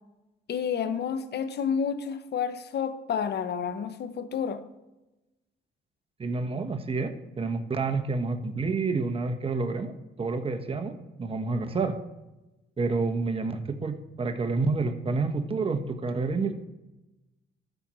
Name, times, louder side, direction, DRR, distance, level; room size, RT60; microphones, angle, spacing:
voice 1, 0.5-4.6, left 7 dB, 55° left, 1.0 m, -30 dB
voice 2, 6.2-9.9 10.2-12.0 12.8-16.5, right 3 dB, 30° right, 1.1 m, -29 dB
13.0 x 4.4 x 6.3 m
cardioid pair, 90°, 20 cm